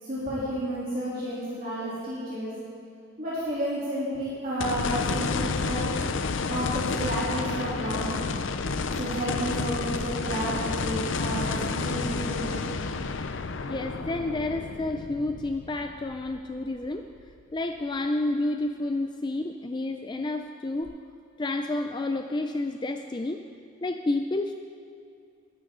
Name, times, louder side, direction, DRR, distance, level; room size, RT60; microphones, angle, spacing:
voice 1, 0.0-2.5 3.2-5.9 6.5-8.3 8.9-12.5, right 1 dB, 45° right, -10 dB, 3.2 m, -31 dB
sound 1, 4.6-16.9 17.4-17.5 20.8-20.9, left 4 dB, 65° left, 0.6 m, -30 dB
voice 2, 13.7-17.1 17.5-20.9 21.4-23.4 23.8-24.5, left 2 dB, 20° left, 6 dB, 0.4 m, -30 dB
20.5 x 11.5 x 3.8 m, 2.5 s
head